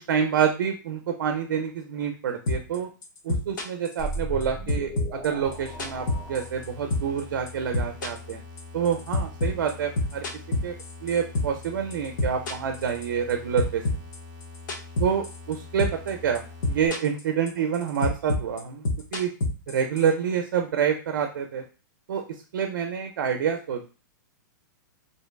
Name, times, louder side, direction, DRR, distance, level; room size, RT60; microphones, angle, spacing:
voice 1, 0.0-2.9 3.2-8.4 8.7-10.3 10.6-10.7 11.0-13.8 15.0-16.4 16.7-18.8 19.1-19.3 19.7-21.6 22.1-22.2 22.5-23.9, right 7 dB, 80° right, 5 dB, 0.4 m, -27 dB
sound 1, 2.5-2.8 3.0-4.4 4.7-6.7 6.9-7.2 7.5-11.7 11.9-13.3 13.6-15.5 15.8-16.1 16.3-17.2 17.5-20.1, left 2 dB, 70° left, 0.6 m, -27 dB
sound 2, 4.0-6.6 6.9-7.0, right 2 dB, 5° left, 0.5 m, -36 dB
sound 3, 5.4-16.9, left 3 dB, 25° right, 0.9 m, -44 dB
2.7 x 2.2 x 2.2 m, 0.34 s
hypercardioid pair, 165°, 11 cm